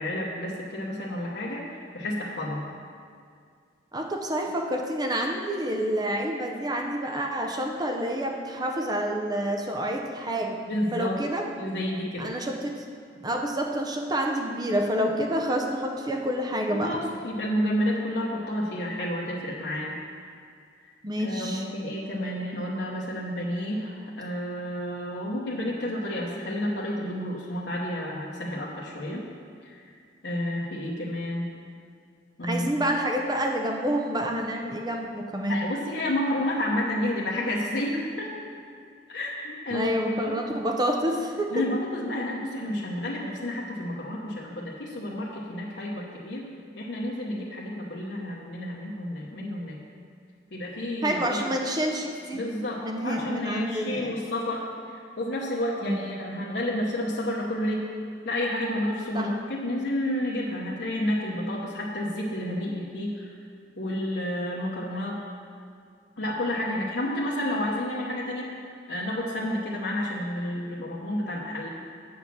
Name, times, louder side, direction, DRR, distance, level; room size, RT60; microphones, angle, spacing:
voice 1, 0.0-2.6 10.7-11.2 11.6-12.3 16.7-19.9 20.8-20.9 21.2-29.2 29.6-29.9 30.2-31.5 32.4-32.7 35.5-38.5 39.1-40.4 41.5-46.5 46.8-49.8 50.5-51.5 52.3-57.9 58.2-63.3 63.8-65.2 66.2-68.6 68.9-71.7, left 1 dB, 75° left, -4 dB, 1.0 m, -30 dB
voice 2, 3.9-10.6 10.9-11.4 12.2-12.7 13.2-17.0 21.0-21.6 32.4-35.6 39.7-41.5 51.0-52.4 52.8-54.2 55.8-56.0 59.1-59.3, equal, 25° right, 2 dB, 0.6 m, -28 dB
7.8 x 7.2 x 6.0 m, 2.2 s
head